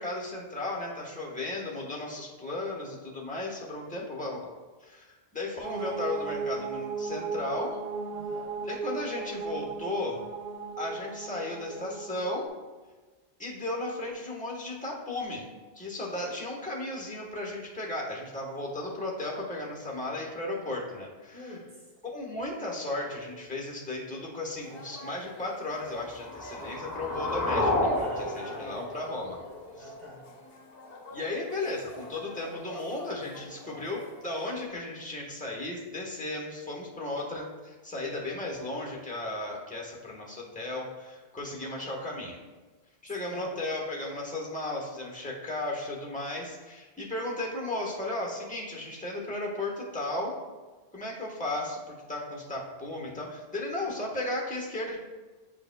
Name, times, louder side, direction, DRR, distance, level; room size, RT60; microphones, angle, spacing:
voice 1, 0.0-4.5 4.8-7.8 8.6-10.2 10.8-12.5 13.4-15.5 15.7-21.5 22.1-29.4 29.8-29.9 31.1-42.4 43.0-50.4 50.9-55.0, left 2 dB, 10° left, -2 dB, 1.1 m, -35 dB
sound 1, 5.6-12.5, right 4 dB, 70° right, 0.8 m, -36 dB
voice 2, 8.1-8.5 16.1-16.4 21.3-21.9 28.0-28.9 29.8-30.3 43.3-43.6, equal, 45° right, -1 dB, 1.3 m, -47 dB
sound 2, 24.5-34.7, left 1 dB, 65° left, 1.1 m, -46 dB
sound 3, 25.9-29.9, left 1 dB, 45° left, 1.0 m, -31 dB
9.3 x 4.9 x 2.2 m, 1.3 s
omnidirectional pair, 1.0 m